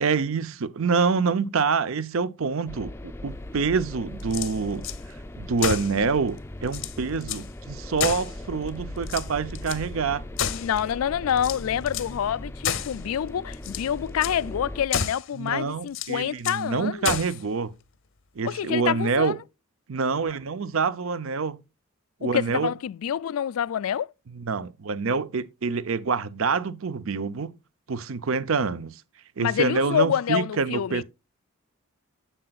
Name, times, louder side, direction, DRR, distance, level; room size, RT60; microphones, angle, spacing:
voice 1, 0.0-4.9 5.4-10.2 15.3-17.7 18.4-19.4 19.9-21.6 22.2-22.7 24.3-27.5 27.9-28.9 29.4-31.0, right 5 dB, 70° right, 0.6 m, -26 dB
sound 1, 2.7-14.8, left 1 dB, 10° left, 0.5 m, -39 dB
sound 2, 4.2-5.0 5.6-6.0 6.4-6.5 6.7-7.5 8.0-8.7 9.0-9.8 10.4-10.9 11.4-12.2 12.6-13.0 13.5-13.9 14.2-14.4 14.9-15.3 15.9-16.7 17.0-17.4, left 8 dB, 65° left, 0.8 m, -30 dB
voice 2, 10.5-17.2 18.4-19.3 22.3-24.1 29.4-31.0, left 9 dB, 85° left, 0.3 m, -27 dB
9.8 x 7.7 x 2.3 m
head